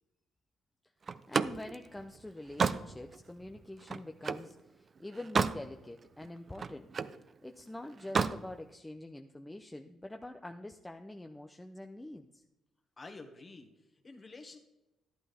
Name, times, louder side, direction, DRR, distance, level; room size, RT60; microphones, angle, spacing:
Slam, 1.1-4.5 5.0-5.7 6.0-7.2 8.0-8.4, right 5 dB, 40° right, 0.6 m, -32 dB
voice 1, 1.3-6.9 7.4-12.4, left 1 dB, 10° left, 5 dB, 0.7 m, -45 dB
voice 2, 13.0-14.6, left 3 dB, 30° left, 6 dB, 1.8 m, -50 dB
12.0 x 11.5 x 3.5 m, 0.97 s
cardioid pair, 90°, 0 cm